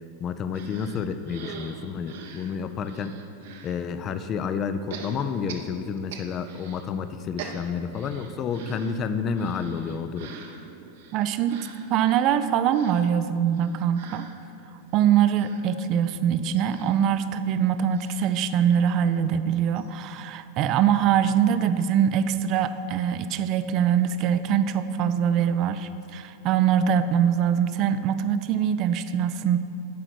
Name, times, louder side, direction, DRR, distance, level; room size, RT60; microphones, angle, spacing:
voice 1, 0.2-3.2 3.6-10.3, left 6 dB, 30° left, 10 dB, 0.5 m, -30 dB
sound 1, 0.5-3.8 4.9-6.9 7.2-19.1 19.5-19.6 19.8-19.9, right 6 dB, 55° right, 0.8 m, -45 dB
voice 2, 11.1-11.6 11.9-14.3 14.9-29.6, right 9 dB, 40° right, 12 dB, 0.4 m, -23 dB
10.5 x 5.0 x 5.9 m, 2.8 s
figure-of-eight pair, 90°, 0 cm